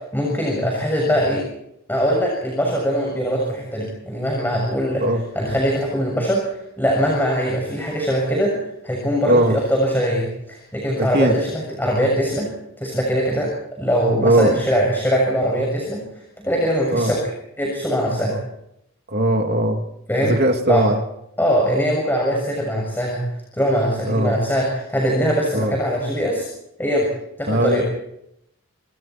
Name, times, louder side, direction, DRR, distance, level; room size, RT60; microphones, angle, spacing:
voice 1, 0.1-1.4 1.9-5.0 5.4-8.5 8.8-12.5 12.8-13.5 13.8-16.0 16.4-17.3 17.6-18.3 20.1-20.3 20.7-20.9 21.4-23.2 23.5-26.5 26.8-27.1 27.4-27.8, equal, 10° left, -1 dB, 6.9 m, -21 dB
voice 2, 11.0-11.3 14.2-14.6 16.9-17.1 18.3-18.4 19.1-19.8 20.2-21.0 24.0-24.3 25.5-25.7 27.5-27.8, right 1 dB, 45° right, 3 dB, 3.0 m, -19 dB
29.5 x 27.0 x 4.6 m, 0.79 s
head